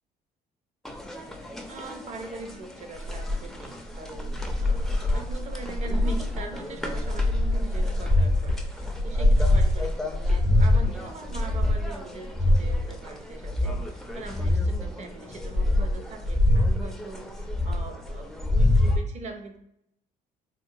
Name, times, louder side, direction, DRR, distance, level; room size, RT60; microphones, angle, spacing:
sound 1, 0.8-19.0, left 1 dB, ahead, 0.4 m, -25 dB
voice 1, 1.7-19.6, right 3 dB, 40° right, 5 dB, 0.6 m, -42 dB
3.8 x 2.2 x 2.6 m, 0.76 s
cardioid pair, 110°, 17 cm